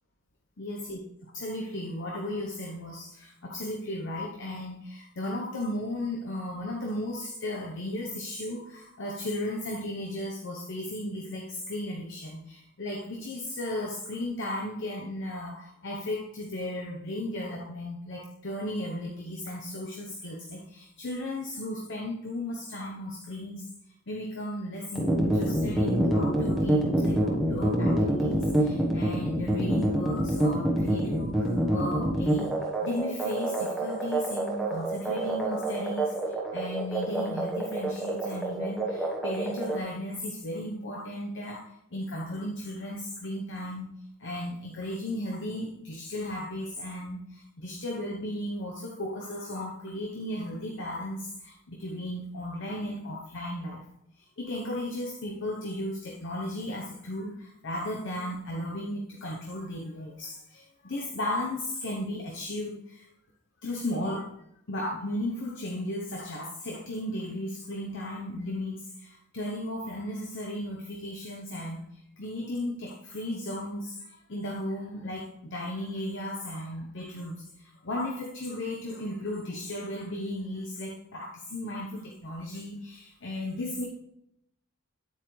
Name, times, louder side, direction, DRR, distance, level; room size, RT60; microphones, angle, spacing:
voice 1, 0.6-1.0 1.3-23.6 24.1-32.5 32.8-43.9 44.2-53.8 54.2-63.1 63.6-64.3 64.7-83.9, left 1 dB, 60° left, 0 dB, 0.9 m, -35 dB
sound 1, 25.0-39.8, right 1 dB, ahead, 1.2 m, -26 dB
9.2 x 8.2 x 3.2 m, 0.80 s
head